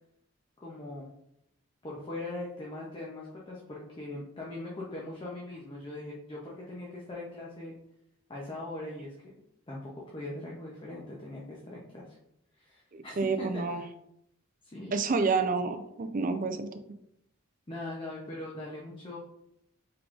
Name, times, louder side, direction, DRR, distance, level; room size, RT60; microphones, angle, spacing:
voice 1, 0.6-1.1 1.8-7.8 8.3-9.1 9.7-12.2 12.6-13.8 14.7-15.0 17.7-19.2, left 2 dB, 25° left, -4 dB, 0.6 m, -40 dB
voice 2, 12.9-13.8 14.9-16.8, right 4 dB, 40° right, 8 dB, 0.4 m, -29 dB
4.6 x 3.8 x 2.4 m, 0.77 s
head